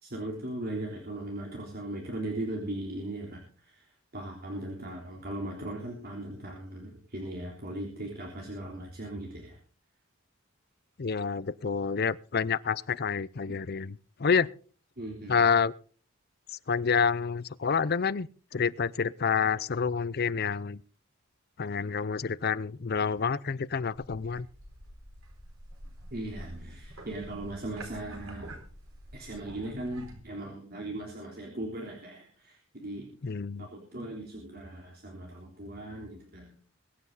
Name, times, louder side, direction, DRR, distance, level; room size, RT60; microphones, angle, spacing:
voice 1, 0.0-3.9 4.1-9.6 15.0-15.4 26.1-28.5 29.1-33.1 33.6-36.5, right 1 dB, 50° right, 3.5 m, -38 dB
voice 2, 11.0-14.5 15.3-15.7 16.5-20.8 21.6-24.5 33.2-33.7, left 6 dB, 50° left, 0.6 m, -28 dB
sound 1, 23.9-30.2, right 1 dB, 85° right, 4.2 m, -48 dB
22.5 x 9.7 x 4.0 m
head